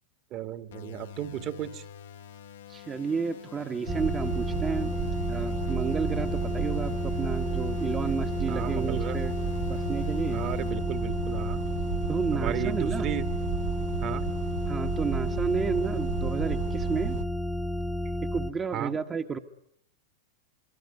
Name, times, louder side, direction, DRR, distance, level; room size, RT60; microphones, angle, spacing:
voice 1, 0.3-1.8 6.2-6.3 8.5-9.2 10.3-11.6 12.3-13.3 14.0-14.3 18.7-18.9, right 11 dB, 40° right, 11 dB, 1.7 m, -34 dB
sound 1, 0.7-10.7, left 8 dB, 75° left, 1.7 m, -46 dB
voice 2, 2.7-5.0 5.3-9.3 9.7-10.5 12.1-13.1 14.7-17.2 18.2-19.4, right 5 dB, 20° right, 5 dB, 1.2 m, -31 dB
sound 2, 3.9-18.5, left 1 dB, ahead, 1.2 m, -31 dB
sound 3, 3.9-17.2, right 8 dB, 70° right, 1.2 m, -34 dB
24.5 x 24.5 x 9.5 m, 0.75 s
hypercardioid pair, 100°, 0 cm